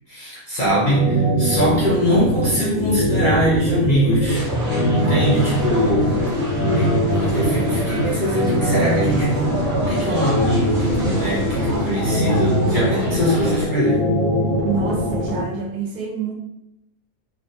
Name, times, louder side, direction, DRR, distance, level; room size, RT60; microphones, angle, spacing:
voice 1, 0.1-4.5 4.9-14.1, equal, 50° left, -7 dB, 0.6 m, -22 dB
sound 1, 0.7-15.4, equal, 80° left, 1.3 m, -22 dB
sound 2, 4.2-13.6, equal, 40° right, 0.9 m, -29 dB
voice 2, 14.6-16.3, right 5 dB, 85° right, -1 dB, 1.2 m, -27 dB
3.2 x 2.3 x 2.6 m, 0.83 s
omnidirectional pair, 1.6 m